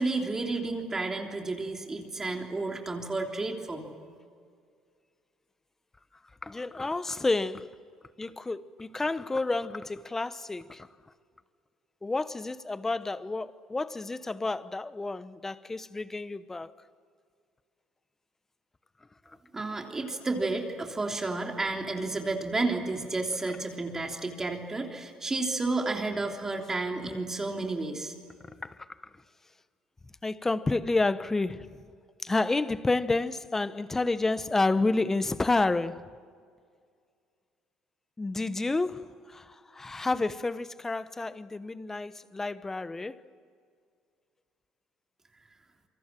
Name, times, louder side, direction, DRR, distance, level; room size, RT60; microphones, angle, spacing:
voice 1, 0.0-3.9 19.5-28.1, right 3 dB, 20° right, 3.4 m, -31 dB
voice 2, 6.4-7.8 8.2-10.9 12.0-16.7 28.5-28.9 30.2-31.8 32.2-36.1 38.2-43.2, left 3 dB, 15° left, 1.0 m, -30 dB
28.0 x 24.0 x 7.6 m
supercardioid pair, 85°, 2 cm